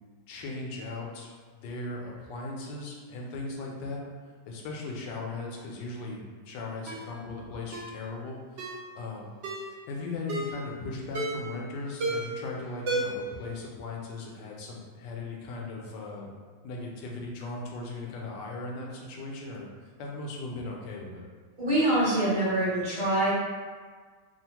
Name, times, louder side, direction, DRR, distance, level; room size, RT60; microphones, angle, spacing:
voice 1, 0.3-4.0 4.5-16.3 16.6-19.7 20.0-21.2, left 3 dB, 85° left, -1 dB, 1.2 m, -38 dB
Ringtone, 6.9-7.1 7.7-7.9 8.6-8.8 9.4-9.7 10.3-10.6 11.1-11.5 12.0-12.4 12.9-13.3 13.6-13.7, right 2 dB, 75° right, 0.6 m, -32 dB
voice 2, 21.6-23.3, right 1 dB, 35° right, -12 dB, 0.9 m, -25 dB
3.2 x 2.1 x 2.8 m, 1.5 s
omnidirectional pair, 1.8 m